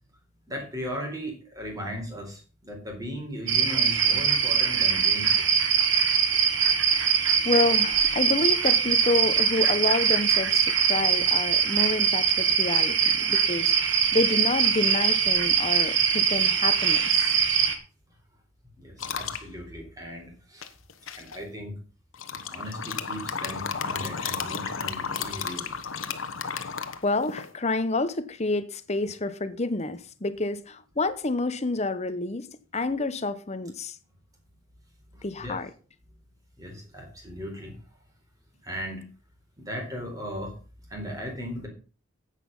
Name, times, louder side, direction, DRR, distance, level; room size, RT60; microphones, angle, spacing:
voice 1, 0.5-5.8 18.8-20.7 21.1-21.8 22.3-25.8 35.1-35.6 36.6-37.8 38.6-39.0 39.6-40.5 40.9-41.7, equal, 15° right, 4.1 m, -37 dB
sound 1, 3.5-17.8, right 7 dB, 65° right, 1.7 m, -22 dB
voice 2, 7.4-13.7 14.1-17.3 27.0-32.5 32.7-34.0 35.2-35.7, left 2 dB, 30° left, 0.9 m, -28 dB
sound 2, 19.0-19.4 20.6-21.4 22.1-27.5, left 6 dB, 75° left, 1.1 m, -33 dB
10.5 x 8.4 x 5.5 m
head